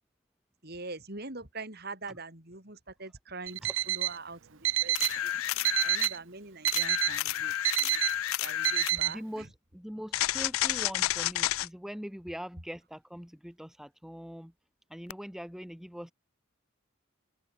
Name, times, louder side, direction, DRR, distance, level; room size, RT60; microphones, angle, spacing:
voice 1, 0.6-8.0 8.4-9.5, right 3 dB, 50° right, 6.1 m, -44 dB
Alarm, 3.5-4.2 4.6-5.2 5.6-6.2 6.6-7.2 7.6-8.1 8.6-9.1, right 15 dB, 70° right, 0.7 m, -28 dB
sound 1, 5.0-6.2 6.7-9.0 10.1-11.7 15.1-15.2, left 14 dB, 90° left, 0.4 m, -31 dB
voice 2, 8.9-14.5 14.9-16.1, equal, ahead, 0.8 m, -42 dB
head